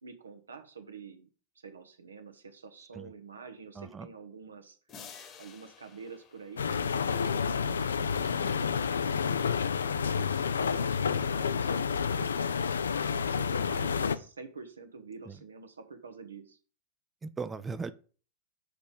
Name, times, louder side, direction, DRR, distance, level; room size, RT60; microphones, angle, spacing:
voice 1, 0.0-1.3 1.5-4.8 5.4-12.6 13.3-16.6, right 5 dB, 75° right, 7 dB, 1.1 m, -48 dB
voice 2, 3.8-4.1 15.3-15.4 17.2-17.9, right 4 dB, 15° right, 13 dB, 0.5 m, -38 dB
sound 1, 4.9-7.7, left 6 dB, 30° left, 1.3 m, -52 dB
sound 2, 6.6-14.2, left 6 dB, 70° left, 0.5 m, -29 dB
6.6 x 5.2 x 5.2 m, 0.39 s
figure-of-eight pair, 90°, 0 cm